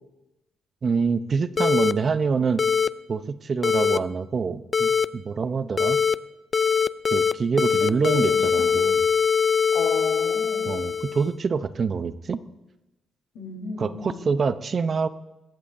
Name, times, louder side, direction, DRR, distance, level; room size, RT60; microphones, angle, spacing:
voice 1, 0.8-2.6 3.1-6.0 7.1-9.1 10.7-12.4 13.8-15.1, right 5 dB, 45° right, 13 dB, 0.7 m, -26 dB
sound 1, 1.6-1.9 2.6-2.9 3.6-4.0 4.7-5.0 5.8-6.1 6.5-7.3 7.6-11.3, left 6 dB, 35° left, 0.4 m, -22 dB
voice 2, 7.8-8.6 9.7-11.0 13.3-14.3, left 4 dB, 80° left, 0 dB, 3.9 m, -34 dB
24.5 x 13.5 x 2.7 m, 0.97 s
cardioid pair, 90°, 0 cm